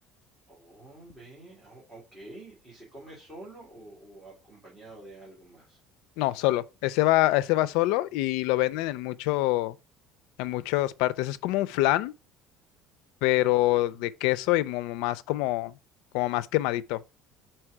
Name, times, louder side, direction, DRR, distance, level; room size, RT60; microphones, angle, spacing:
voice 1, 0.5-5.8 13.4-14.1, right 2 dB, 15° right, 2.1 m, -48 dB
voice 2, 6.2-9.8 10.4-12.1 13.2-15.7 16.1-17.0, left 17 dB, 80° left, 0.4 m, -25 dB
4.5 x 4.5 x 4.8 m
cardioid pair, 180°, 0 cm